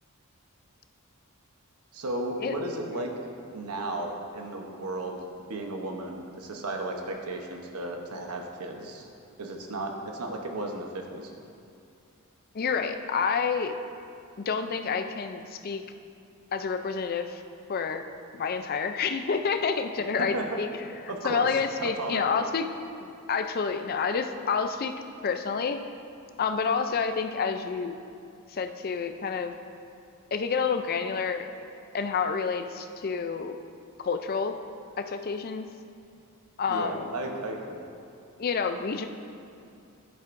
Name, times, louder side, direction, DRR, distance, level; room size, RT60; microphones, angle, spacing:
voice 1, 1.9-3.1 3.5-5.2 5.5-9.1 9.4-11.3 20.2-20.6 21.1-22.3 36.7-37.8, right 2 dB, 85° right, 2 dB, 0.9 m, -34 dB
voice 2, 12.5-13.8 14.4-15.8 16.5-17.4 17.7-18.0 18.3-20.7 21.2-22.6 23.0-24.9 25.2-25.8 26.4-28.0 28.5-29.5 30.3-31.5 31.9-33.6 34.0-34.6 35.0-35.7 36.6-37.1 38.4-39.1, left 5 dB, 45° left, 7 dB, 0.4 m, -28 dB
10.5 x 10.0 x 2.6 m, 2.5 s
head